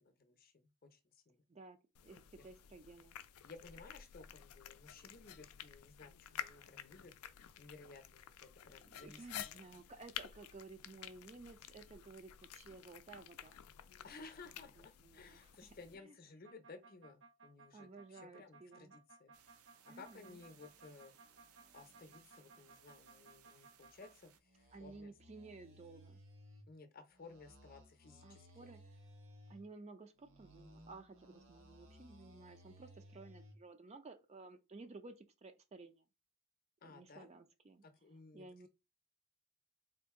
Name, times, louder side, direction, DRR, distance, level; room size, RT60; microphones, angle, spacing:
voice 1, 0.0-1.4 2.3-2.4 3.4-7.1 7.6-9.3 14.0-19.3 19.9-21.1 21.7-25.1 26.7-28.7 36.8-37.3 37.8-38.7, left 4 dB, 40° left, 0.6 m, -57 dB
voice 2, 1.5-3.2 8.7-13.6 14.6-15.7 16.0-16.1 17.7-18.9 19.9-20.4 24.7-26.2 28.2-29.0 29.5-36.0 36.8-37.8 38.3-38.7, right 3 dB, 30° right, 0.3 m, -55 dB
sound 1, 1.9-15.9, left 10 dB, 80° left, 0.4 m, -51 dB
sound 2, 16.4-24.1 24.4-26.6 27.1-29.6 30.2-33.6, right 1 dB, 60° right, 1.0 m, -60 dB
sound 3, 19.3-24.4, right 7 dB, 80° right, 0.5 m, -66 dB
3.8 x 2.5 x 3.5 m
head